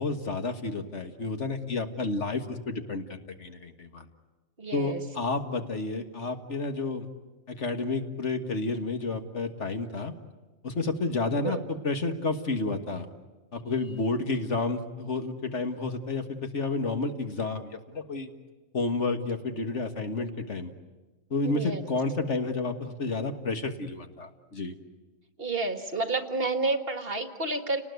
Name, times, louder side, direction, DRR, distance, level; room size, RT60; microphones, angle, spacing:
voice 1, 0.0-4.1 4.7-7.1 7.5-10.1 10.6-13.1 13.5-18.3 18.7-20.7 21.3-24.8, left 3 dB, 60° left, 6 dB, 1.9 m, -30 dB
voice 2, 4.6-5.0 11.4-11.6 21.5-21.8 25.4-27.8, right 3 dB, 45° right, 7 dB, 1.8 m, -30 dB
30.0 x 19.5 x 9.4 m, 1.2 s
omnidirectional pair, 1.4 m